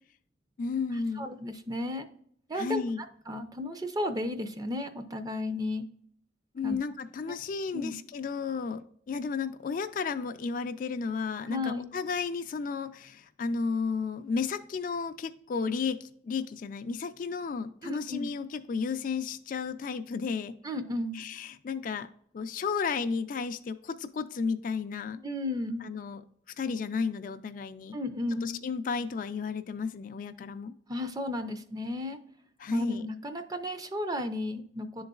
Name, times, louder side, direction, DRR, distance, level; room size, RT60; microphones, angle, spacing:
voice 1, 0.6-1.3 2.5-3.0 6.5-20.5 21.1-22.1 22.3-25.2 25.8-26.2 26.6-28.0 28.4-30.7 32.6-33.1, left 5 dB, 50° left, 10 dB, 0.3 m, -33 dB
voice 2, 1.2-2.1 2.5-2.8 3.3-5.8 6.6-6.8 7.2-7.3 7.7-7.9 11.5-11.9 17.8-18.3 20.6-21.2 25.2-25.8 27.9-28.6 30.9-32.2 32.7-35.0, left 1 dB, 20° right, 7 dB, 0.5 m, -33 dB
10.5 x 3.9 x 2.3 m, 0.65 s
head